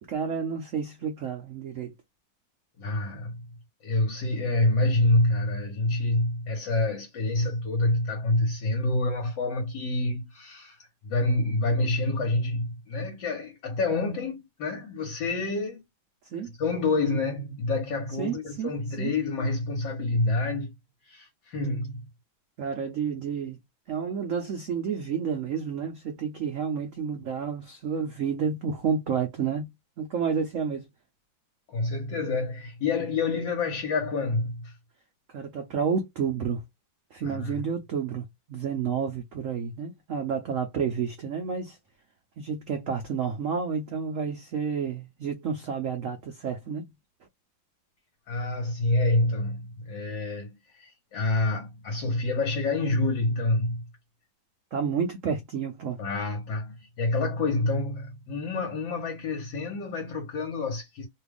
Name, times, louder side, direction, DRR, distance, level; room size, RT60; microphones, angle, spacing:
voice 1, 0.0-1.9 16.3-16.5 18.2-19.1 22.6-23.6 23.9-29.7 30.0-30.8 35.3-36.6 37.1-41.8 42.4-46.9 54.7-56.0, right 6 dB, 75° right, 0.7 m, -30 dB
voice 2, 2.8-3.4 3.8-10.8 11.0-15.8 16.6-20.7 21.0-22.1 31.7-34.7 37.2-37.6 48.3-53.8 56.0-61.1, left 2 dB, 70° left, 1.6 m, -27 dB
3.3 x 2.3 x 3.3 m
omnidirectional pair, 2.1 m